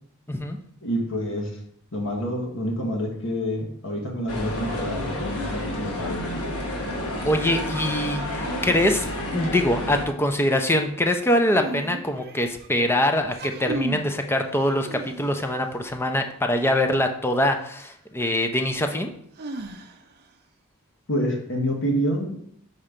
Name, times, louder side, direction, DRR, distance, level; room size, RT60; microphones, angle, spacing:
voice 1, 0.8-1.6 1.9-6.5 21.1-22.4, equal, 60° left, 0 dB, 1.5 m, -27 dB
sound 1, 4.3-10.1, left 1 dB, 75° left, 1.2 m, -30 dB
voice 2, 7.2-19.1, left 1 dB, 10° left, 5 dB, 0.6 m, -23 dB
sound 2, 11.4-12.7 13.2-14.1 14.6-15.5 17.5-17.6 19.4-20.2, right 2 dB, 45° right, 0.6 m, -34 dB
5.0 x 4.3 x 5.1 m, 0.68 s
head